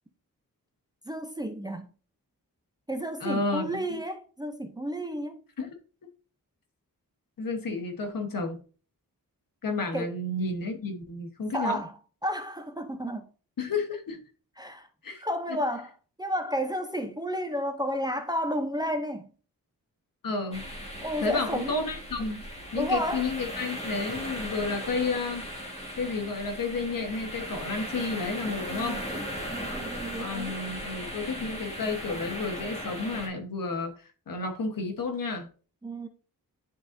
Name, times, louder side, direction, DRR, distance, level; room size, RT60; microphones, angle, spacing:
voice 1, 1.1-1.9 2.9-5.4 9.9-10.1 11.5-11.9 12.2-13.3 14.6-14.9 15.2-15.9 16.2-19.3 21.0-21.7 22.8-23.3 28.8-30.6 35.8-36.1, equal, 10° right, 0.6 m, -32 dB
voice 2, 3.2-4.0 5.6-5.7 7.4-8.6 9.6-11.8 13.6-14.2 15.0-15.2 15.5-15.6 20.2-20.6 21.2-22.4 22.7-25.5 26.0-29.0 30.2-35.5, left 3 dB, 70° left, 1.3 m, -31 dB
sound 1, 20.5-33.3, equal, 15° left, 1.6 m, -37 dB
10.0 x 3.9 x 2.6 m
wide cardioid pair, 145°, 35 cm